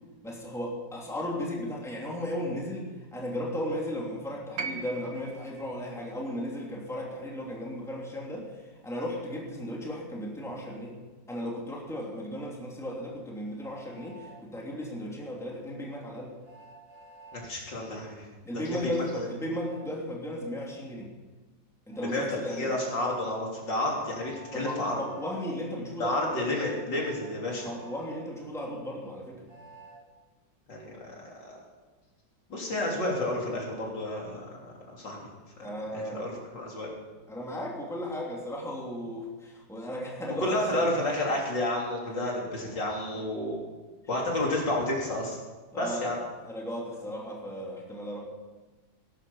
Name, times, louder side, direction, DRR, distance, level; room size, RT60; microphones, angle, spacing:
voice 1, 0.2-11.0 11.3-16.3 18.4-21.1 21.9-22.7 24.5-26.5 27.6-29.5 35.6-36.3 37.3-40.9 43.1-43.2 45.7-48.2, equal, ahead, -3 dB, 2.9 m, -35 dB
sound 1, 4.6-8.7 9.9-10.0, right 5 dB, 90° right, 1.8 m, -42 dB
Train, 13.6-14.4 16.4-17.5 19.5-19.8 21.9-22.0 24.1-25.3 26.5-28.2 29.5-30.0, right 3 dB, 70° right, 6.5 m, -51 dB
voice 2, 17.3-18.3 18.7-19.3 22.0-25.0 26.0-27.7 30.7-31.6 32.5-34.4 35.0-35.2 35.9-36.9 40.4-43.6 44.1-45.4 45.7-46.2, left 1 dB, 80° left, -2 dB, 4.2 m, -31 dB
20.0 x 12.0 x 5.6 m, 1.3 s
omnidirectional pair, 1.9 m